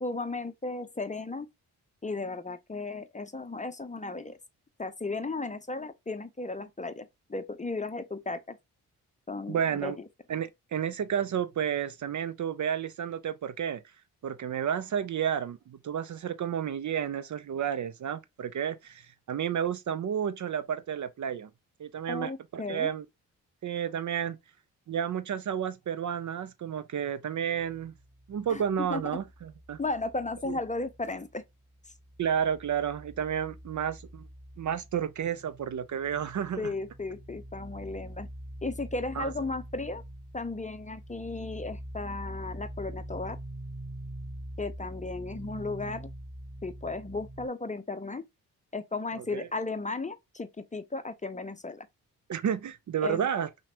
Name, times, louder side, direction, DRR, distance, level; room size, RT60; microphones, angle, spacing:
voice 1, 0.0-1.5 2.0-4.4 4.8-8.6 9.3-9.9 22.1-22.9 28.5-29.2 29.8-31.4 36.6-38.3 38.6-40.0 40.3-43.4 44.6-46.1 46.6-48.2 48.7-51.9 53.0-53.3, left 3 dB, 20° left, 0.6 m, -35 dB
voice 2, 9.5-10.0 10.3-13.8 14.2-21.5 21.8-23.1 23.6-24.4 24.9-27.9 28.3-29.8 30.5-30.6 32.2-34.3 34.6-36.7 39.2-39.3 49.1-49.5 52.3-53.5, right 8 dB, 45° right, 0.5 m, -31 dB
sound 1, 27.6-31.4 31.7-47.5, right 1 dB, 20° right, 1.1 m, -44 dB
5.7 x 2.3 x 2.8 m
supercardioid pair, 45°, 40 cm